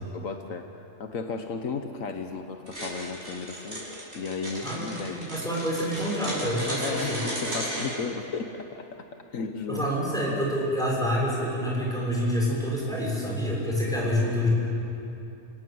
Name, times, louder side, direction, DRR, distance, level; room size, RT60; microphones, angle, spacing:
voice 1, 0.0-3.9 4.1-5.3 6.8-8.9 9.3-9.8 10.3-10.4, left 5 dB, 75° left, 6 dB, 1.4 m, -34 dB
sound 1, 2.7-7.9, equal, 50° right, 6.9 m, -34 dB
voice 2, 4.6-7.2 9.7-14.5, equal, ahead, -4 dB, 6.6 m, -27 dB
30.0 x 17.5 x 7.8 m, 2.8 s
omnidirectional pair, 1.4 m